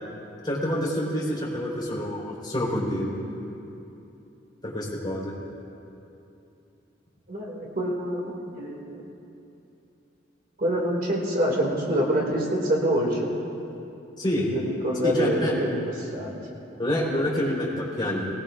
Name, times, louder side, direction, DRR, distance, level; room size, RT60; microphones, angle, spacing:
voice 1, 0.4-3.1 4.6-5.3 14.2-14.5 15.0-15.5 16.8-18.3, left 1 dB, 25° left, -5 dB, 4.0 m, -27 dB
voice 2, 7.3-8.9 10.6-13.3 14.5-15.8 16.1-16.3, equal, 50° right, -3 dB, 2.3 m, -26 dB
20.0 x 19.0 x 2.5 m, 2.8 s
head